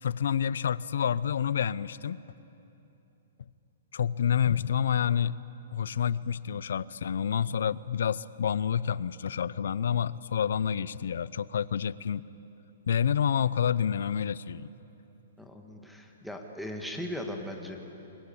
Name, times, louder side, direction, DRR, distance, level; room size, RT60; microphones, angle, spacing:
voice 1, 0.0-2.2 3.9-5.4 5.7-12.2 12.9-14.7, left 8 dB, 70° left, 19 dB, 0.7 m, -28 dB
voice 2, 15.4-17.8, left 1 dB, ahead, 1 dB, 1.6 m, -38 dB
29.5 x 22.0 x 8.7 m, 2.9 s
hypercardioid pair, 175°, 0 cm